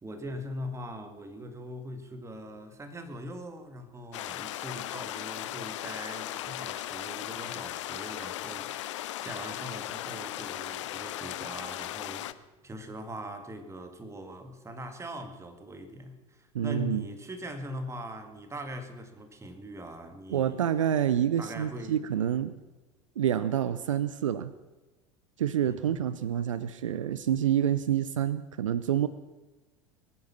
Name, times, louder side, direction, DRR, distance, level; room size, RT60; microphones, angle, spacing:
voice 1, 0.0-12.3 12.6-20.6 21.4-22.5 25.7-26.1, equal, 15° right, 7 dB, 2.0 m, -41 dB
sound 1, 4.1-12.3, left 14 dB, 65° left, 0.6 m, -37 dB
voice 2, 16.5-17.0 20.3-22.5 23.2-24.5 25.4-29.1, right 10 dB, 75° right, 14 dB, 0.6 m, -27 dB
22.5 x 9.8 x 5.9 m, 1.2 s
figure-of-eight pair, 75°, 17 cm